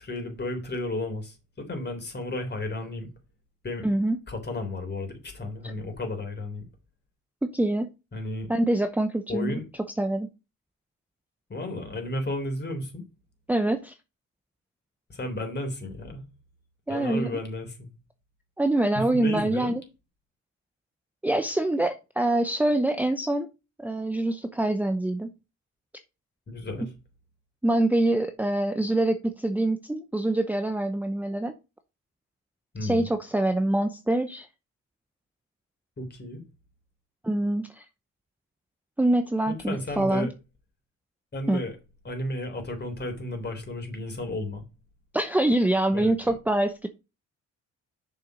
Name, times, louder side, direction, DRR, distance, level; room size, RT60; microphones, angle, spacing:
voice 1, 0.0-3.1 3.6-3.9 4.3-6.6 8.1-8.5 9.3-9.6 11.5-13.0 15.1-16.3 16.9-17.9 18.9-19.7 26.5-26.9 32.7-33.1 36.0-36.4 39.5-40.3 41.3-41.8 42.0-44.6 45.9-46.3, left 1 dB, 35° left, 3.6 m, -33 dB
voice 2, 3.8-4.2 7.4-7.9 8.5-9.6 10.0-10.3 13.5-13.9 16.9-17.4 18.6-19.8 21.2-23.5 23.8-25.3 27.6-31.5 32.8-34.5 37.2-37.8 39.0-40.3 41.5-41.6 45.1-46.9, right 1 dB, 5° right, 0.7 m, -25 dB
6.8 x 5.7 x 5.1 m
cardioid pair, 90°, 30 cm